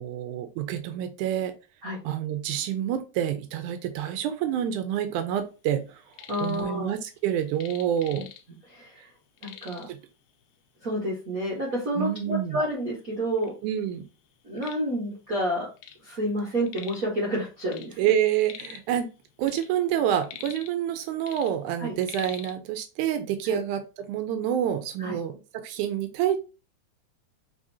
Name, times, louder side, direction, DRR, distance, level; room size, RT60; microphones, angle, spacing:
voice 1, 0.0-1.5 2.1-6.0 6.4-8.3 9.9-10.0 12.0-12.6 13.6-14.1 18.0-19.1 19.4-23.8 24.1-26.4, right 10 dB, 90° right, 7 dB, 2.1 m, -27 dB
sound 1, 5.9-6.7 6.9-8.7 9.0-9.1 9.4-10.0 10.8-10.9 11.4-11.5 12.3-12.4 12.7-13.5 14.0-16.1 16.3-17.1 17.4-18.9 19.3-20.9 21.2-22.6, left 10 dB, 85° left, 2.0 m, -44 dB
voice 2, 6.3-6.9 8.1-8.2 8.7-9.0 9.4-9.9 10.8-13.5 14.4-15.7 16.0-18.1 21.8-21.9 23.4-23.6 25.0-25.2, equal, 60° right, -5 dB, 0.8 m, -29 dB
5.0 x 3.5 x 2.7 m, 0.31 s
omnidirectional pair, 3.4 m